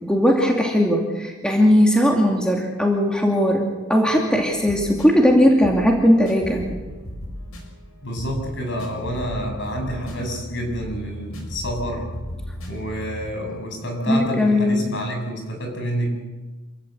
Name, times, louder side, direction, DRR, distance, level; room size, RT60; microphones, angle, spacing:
voice 1, 0.0-6.8 14.1-14.9, equal, 5° left, 0 dB, 2.4 m, -18 dB
sound 1, 4.5-13.3, equal, 85° left, 6.1 m, -36 dB
voice 2, 8.0-12.1 12.6-16.1, equal, 60° left, 2 dB, 7.1 m, -28 dB
27.5 x 16.0 x 8.0 m, 1.3 s
head